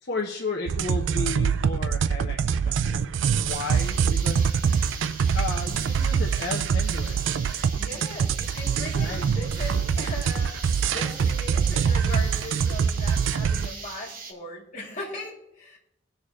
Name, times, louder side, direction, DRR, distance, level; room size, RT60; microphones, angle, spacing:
voice 1, 0.0-3.1 3.4-4.4 5.3-7.2 8.9-9.2, left 3 dB, 60° left, -1 dB, 1.0 m, -33 dB
sound 1, 0.7-13.7, right 6 dB, 75° right, 0.4 m, -24 dB
sound 2, 3.5-14.3, right 4 dB, 45° right, 1.4 m, -41 dB
voice 2, 7.8-15.8, left 1 dB, 40° left, -2 dB, 3.0 m, -38 dB
19.0 x 6.5 x 3.2 m, 0.83 s
head